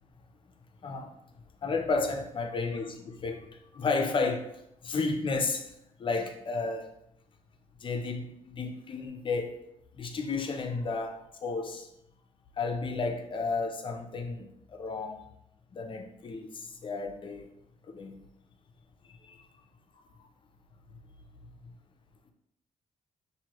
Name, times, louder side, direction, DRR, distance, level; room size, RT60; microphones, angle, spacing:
voice 1, 0.8-1.1 1.6-3.4 3.7-4.5 4.8-5.7 6.0-6.9 7.8-9.6 10.0-11.9 12.6-15.3 15.7-17.5 17.9-18.1 19.2-19.4 21.6-21.7, left 4 dB, 40° left, 0.6 m, -32 dB
6.2 x 2.7 x 2.9 m
cardioid pair, 120°, 13 cm